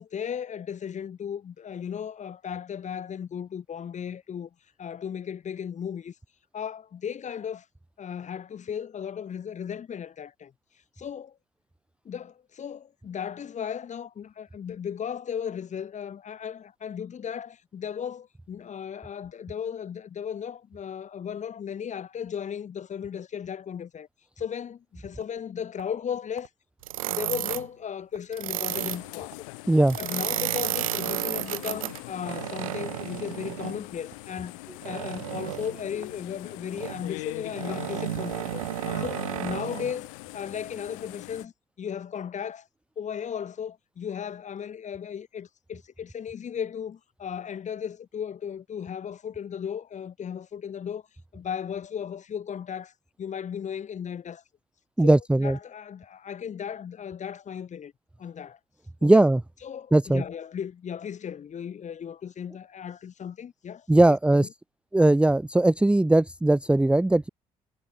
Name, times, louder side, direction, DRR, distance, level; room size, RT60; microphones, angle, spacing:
voice 1, 0.0-4.5 4.8-6.1 6.5-7.6 8.0-10.5 11.0-11.4 12.0-24.1 24.4-26.5 27.0-29.4 30.0-38.6 39.0-42.7 43.0-51.0 51.3-52.9 53.2-54.4 55.0-57.9 58.2-58.6 59.0-59.3 59.6-64.5, left 8 dB, 45° left, 3.3 m, -36 dB
sound 1, 24.6-26.1 26.4-26.5 27.0-27.1 27.4-27.9 28.1-28.5 28.7-28.9 29.3-30.8 31.1-31.9 32.4-32.6 33.0-33.2 33.6-34.3 35.1-35.3 36.0-36.2 36.5-37.1 37.8-37.9 38.2-38.4 38.7-39.0, right 16 dB, 60° right, 7.5 m, -51 dB
sound 2, 26.8-27.7 28.3-29.0 29.9-33.8 34.8-35.8 36.8-37.0 37.5-39.9, right 15 dB, 80° right, 0.7 m, -32 dB
sound 3, 28.7-41.4, left 27 dB, 75° left, 2.0 m, -42 dB
voice 2, 55.0-55.6 59.0-59.4 59.9-60.2 63.9-64.5 64.9-67.3, right 2 dB, 5° right, 0.5 m, -19 dB
figure-of-eight pair, 50°, 17 cm